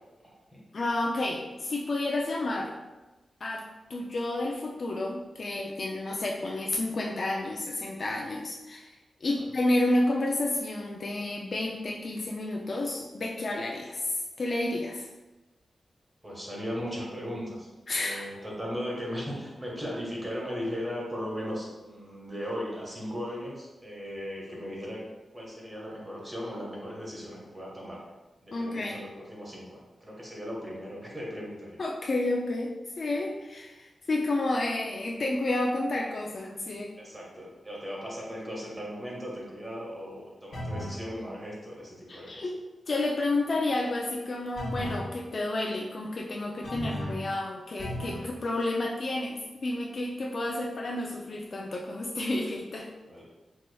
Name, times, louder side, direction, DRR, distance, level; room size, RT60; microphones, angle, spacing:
voice 1, 0.2-0.6 16.2-17.7 17.9-25.0 25.3-28.0 28.4-31.8 37.0-42.4 53.1-53.2, equal, 20° right, -4 dB, 1.2 m, -37 dB
voice 2, 0.7-2.7 3.4-15.1 17.9-18.3 28.5-29.0 31.8-36.9 42.1-42.6 42.9-52.9, left 2 dB, 50° left, -1 dB, 0.4 m, -30 dB
sound 1, 40.5-41.0 44.6-45.1 46.6-47.3 47.8-48.3, left 1 dB, 85° left, 0.9 m, -35 dB
4.4 x 2.8 x 2.2 m, 1.1 s
wide cardioid pair, 100°, 0 cm